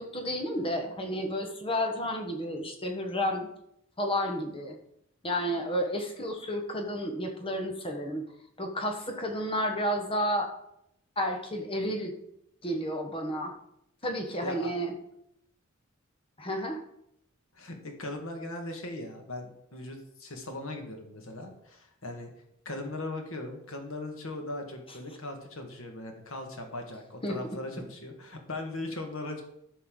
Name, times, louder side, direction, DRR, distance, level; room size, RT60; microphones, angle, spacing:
voice 1, 0.0-3.5 4.0-4.8 5.2-8.2 8.6-10.5 11.2-12.1 12.6-13.5 14.0-14.9 16.4-16.8 27.2-27.4, equal, 25° left, 4 dB, 1.2 m, -31 dB
voice 2, 17.5-22.3 22.7-29.4, left 2 dB, 75° left, 3 dB, 1.6 m, -39 dB
13.5 x 5.5 x 3.9 m, 0.77 s
head